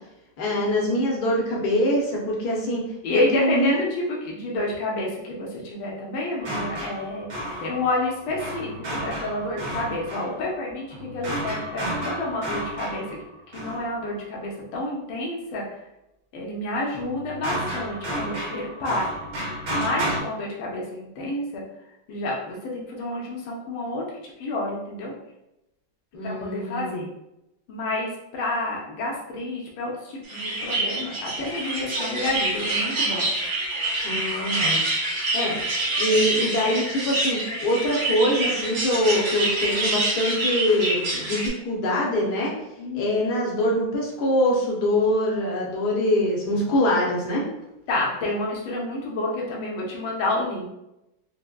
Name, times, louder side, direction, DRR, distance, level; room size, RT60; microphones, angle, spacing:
voice 1, 0.4-2.8 3.1-3.8 26.1-27.0 34.0-34.8 35.3-35.6 36.0-42.5 42.9-47.4, left 1 dB, 65° left, -3 dB, 1.2 m, -24 dB
voice 2, 3.0-7.3 7.6-10.9 11.1-13.2 13.5-15.6 16.3-19.1 19.7-21.6 22.1-24.0 24.4-25.1 26.2-27.0 27.7-33.3 42.8-43.2 47.9-50.7, left 2 dB, 85° left, -3 dB, 1.5 m, -29 dB
sound 1, 6.4-14.2 16.9-20.2, right 1 dB, 60° right, 1.3 m, -32 dB
sound 2, 30.3-41.5, right 2 dB, 75° right, 1.8 m, -26 dB
4.6 x 2.1 x 2.2 m, 0.90 s
omnidirectional pair, 2.1 m